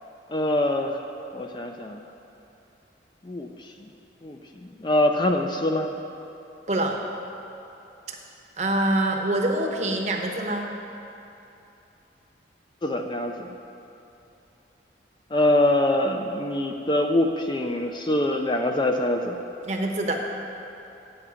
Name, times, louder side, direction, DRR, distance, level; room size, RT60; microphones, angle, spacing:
voice 1, 0.3-1.0 1.3-2.0 3.3-3.5 4.2-4.4 4.8-5.9 12.8-13.5 15.3-19.4, left 1 dB, 25° left, 4 dB, 0.4 m, -24 dB
voice 2, 6.7-7.0 8.6-10.7 19.6-20.2, right 1 dB, 40° right, 2 dB, 0.8 m, -25 dB
9.5 x 7.8 x 4.9 m, 2.8 s
head